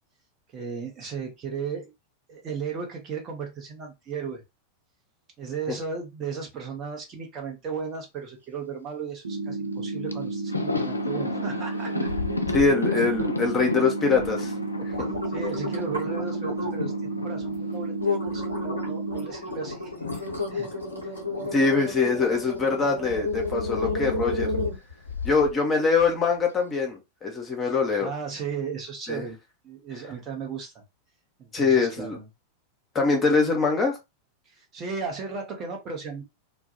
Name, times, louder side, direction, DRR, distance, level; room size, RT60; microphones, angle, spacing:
voice 1, 0.5-1.9 2.3-4.4 5.4-11.9 15.3-20.7 21.0-21.5 22.8-22.9 27.6-27.7 28.0-29.4 29.6-30.7 31.4-32.3 34.5-36.2, right 5 dB, 30° right, 2 dB, 0.8 m, -35 dB
sound 1, 9.2-19.3, right 2 dB, 70° right, 0.5 m, -32 dB
Thunder, 9.7-9.8 10.1-18.9 19.2-23.5 23.7-23.9 25.1-25.8, left 2 dB, 80° left, 0.3 m, -35 dB
sound 2, 12.1-12.7 13.1-13.6 14.2-14.3 14.7-16.9 17.4-17.6 18.0-25.5 26.0-26.1, left 3 dB, 90° right, 0.9 m, -31 dB
voice 2, 12.5-14.5 14.8-15.1 21.5-24.5 25.2-28.1 29.1-29.2 31.5-32.2 32.9-33.9, left 4 dB, 20° left, 2 dB, 0.7 m, -23 dB
2.3 x 2.1 x 2.8 m, 0.23 s
figure-of-eight pair, 90°, 0 cm